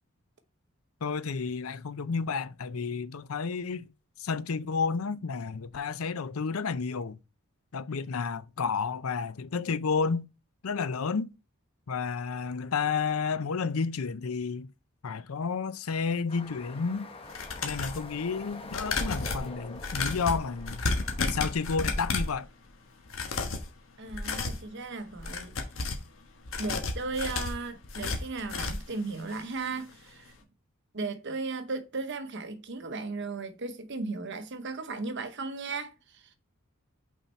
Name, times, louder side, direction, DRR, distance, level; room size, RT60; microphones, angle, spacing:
voice 1, 1.0-3.9 4.2-7.2 7.7-10.3 10.6-11.3 11.9-14.7 15.0-17.1 17.6-20.8 21.2-22.5, left 5 dB, 85° left, 0.6 m, -31 dB
sound 1, 16.3-22.4, left 2 dB, 25° left, 1.0 m, -46 dB
sound 2, 17.2-18.1 18.7-22.4 23.0-23.7 24.1-24.6 25.1-26.1 26.5-28.9 29.3-29.4 29.8-29.9, left 3 dB, 65° left, 1.3 m, -32 dB
voice 2, 24.0-25.5 26.6-30.3 30.9-36.3, right 3 dB, 55° right, 0.9 m, -36 dB
5.7 x 4.4 x 4.3 m
head